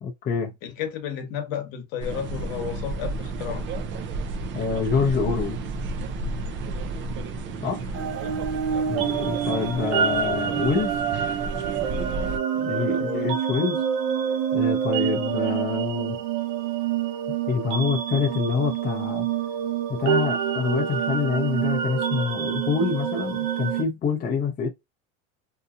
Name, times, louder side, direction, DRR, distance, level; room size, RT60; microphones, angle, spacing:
voice 1, 0.0-0.5 4.5-5.6 7.6-7.8 8.9-11.0 12.6-13.8 14.5-16.2 17.5-19.3 19.9-24.7, left 5 dB, 25° left, 0.6 m, -26 dB
voice 2, 0.6-3.7 7.6-8.3 8.7-8.9 12.5-13.3, left 9 dB, 55° left, 1.1 m, -34 dB
sound 1, 2.0-12.4, right 3 dB, 30° right, 0.4 m, -32 dB
sound 2, 7.9-23.8, right 9 dB, 65° right, 0.8 m, -27 dB
2.8 x 2.5 x 2.4 m
supercardioid pair, 105°, 40 cm